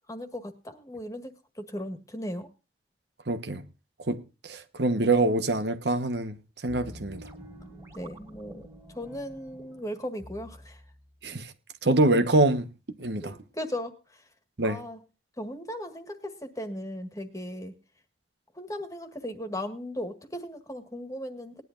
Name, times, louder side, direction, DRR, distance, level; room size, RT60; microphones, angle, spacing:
voice 1, 0.1-2.5 7.9-10.8 13.2-14.2 14.6-15.0 15.4-17.7 18.5-21.6, left 1 dB, 20° left, 1.7 m, -37 dB
voice 2, 3.3-3.6 4.1-6.4 6.6-7.2 11.2-11.5 11.8-12.7 13.0-13.3 14.6-14.8, right 2 dB, 75° right, 1.2 m, -25 dB
sound 1, 6.7-11.0, right 1 dB, 15° right, 2.6 m, -47 dB
19.5 x 11.0 x 2.6 m
head